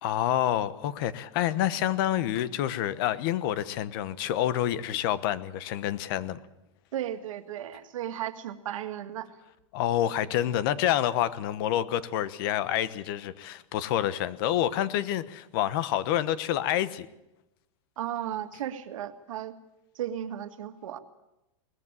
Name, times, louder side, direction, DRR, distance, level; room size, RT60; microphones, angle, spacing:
voice 1, 0.0-6.4 9.7-17.1, left 12 dB, 45° left, 1.1 m, -28 dB
voice 2, 6.9-9.3 18.0-19.6 20.0-21.0, right 11 dB, 75° right, 1.9 m, -35 dB
19.5 x 14.5 x 9.8 m
supercardioid pair, 170°, 17 cm